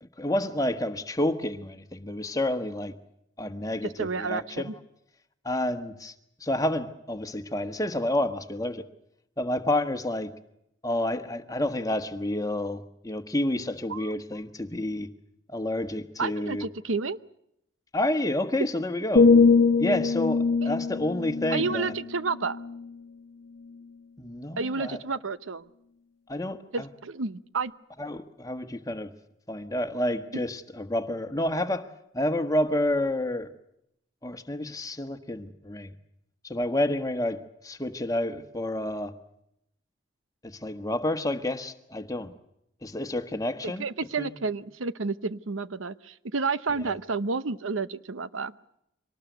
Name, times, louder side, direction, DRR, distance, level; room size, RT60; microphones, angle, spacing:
voice 1, 0.0-2.9 3.4-4.7 5.4-6.1 6.4-8.8 9.4-10.3 10.8-15.1 15.5-16.7 17.9-19.3 19.8-21.9 24.2-25.0 26.3-26.9 28.0-29.1 29.5-31.9 32.1-33.5 34.2-35.9 36.4-39.1 40.4-42.3 42.8-43.8 44.2-44.4 46.8-46.9, left 1 dB, 15° left, 8 dB, 1.3 m, -29 dB
voice 2, 4.0-4.7 13.9-14.2 16.2-17.2 20.6-20.7 21.5-22.6 24.6-25.7 26.7-27.7 43.6-48.5, right 4 dB, 85° right, 15 dB, 0.9 m, -30 dB
sound 1, 19.2-23.1 23.6-23.8, left 4 dB, 75° left, 1.1 m, -23 dB
25.0 x 19.5 x 8.1 m, 0.78 s
head